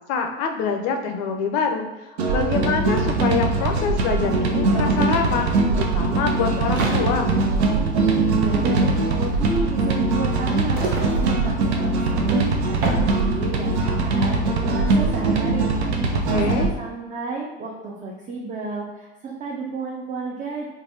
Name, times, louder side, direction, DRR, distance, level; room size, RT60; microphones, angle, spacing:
voice 1, 0.1-5.5 5.7-7.3 16.1-16.7, left 5 dB, 55° left, 4 dB, 0.5 m, -25 dB
sound 1, 2.2-16.7, right 3 dB, 80° right, 0.5 m, -21 dB
sound 2, 3.0-3.1 3.3-13.7, right 2 dB, 50° right, 0.8 m, -35 dB
voice 2, 8.1-12.3 12.7-15.7 16.0-20.6, right 3 dB, 25° right, -2 dB, 0.4 m, -32 dB
3.2 x 2.3 x 2.6 m, 1.1 s
hypercardioid pair, 85°, 32 cm